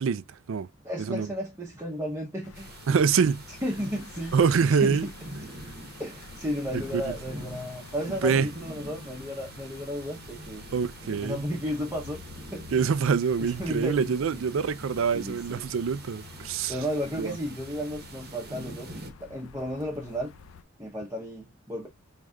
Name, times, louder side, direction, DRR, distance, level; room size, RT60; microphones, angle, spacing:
voice 1, 0.0-0.7 1.0-1.3 2.9-3.4 4.3-5.1 6.7-7.1 8.2-8.5 10.7-11.4 12.7-16.8 17.2-17.4, right 6 dB, 65° right, 0.4 m, -25 dB
voice 2, 0.8-2.7 3.5-5.1 6.0-10.7 11.1-12.2 12.5-12.7 13.4-14.4 15.1-15.7 16.7-20.3 20.8-21.9, equal, 10° right, 0.7 m, -34 dB
sound 1, 2.4-20.6, left 4 dB, 70° left, 0.5 m, -48 dB
sound 2, 2.5-19.1, right 2 dB, 45° right, 0.9 m, -45 dB
4.9 x 3.2 x 2.2 m
head